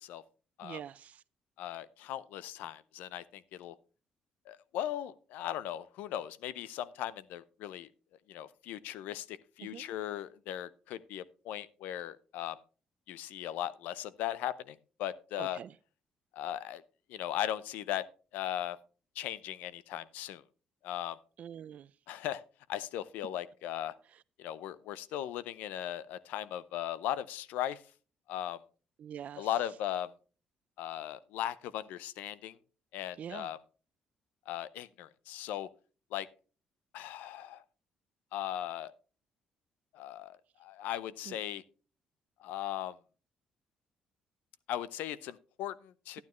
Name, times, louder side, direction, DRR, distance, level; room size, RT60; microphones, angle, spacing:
voice 1, 0.6-1.2 9.6-9.8 15.4-15.7 21.4-21.9 29.0-29.5 33.2-33.5 41.3-41.4, right 9 dB, 60° right, 0.4 m, -44 dB
voice 2, 1.6-3.8 4.5-7.9 8.3-12.6 13.1-15.6 16.3-16.8 17.1-18.1 18.3-18.8 19.2-20.4 20.8-21.2 22.1-22.4 22.7-23.9 24.4-27.8 28.3-28.6 29.4-30.1 30.8-32.6 32.9-33.6 34.5-35.7 36.1-36.3 36.9-37.6 38.3-38.9 39.9-41.6 42.4-43.0 44.7-46.2, left 12 dB, 85° left, 0.5 m, -38 dB
11.5 x 9.5 x 3.1 m
cardioid pair, 80°, 3 cm